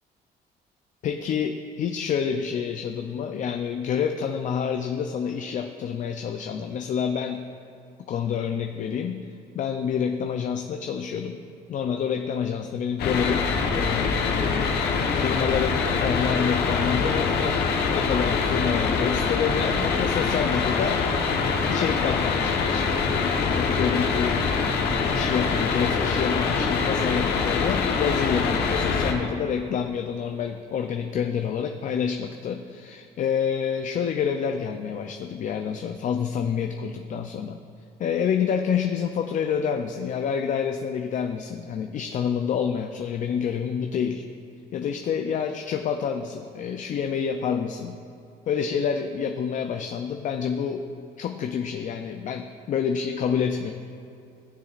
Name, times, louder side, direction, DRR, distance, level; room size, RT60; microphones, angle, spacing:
voice 1, 1.0-7.5 8.1-9.3 9.5-11.4 11.7-17.6 17.9-21.0 21.7-23.0 23.5-24.5 25.1-37.6 38.0-44.3 44.7-48.0 48.5-50.9 51.2-53.7, left 7 dB, 50° left, 5 dB, 0.5 m, -28 dB
sound 1, 13.0-29.1, left 5 dB, 70° left, 1.1 m, -24 dB
16.5 x 6.9 x 2.5 m, 2.6 s
cardioid pair, 110°, 17 cm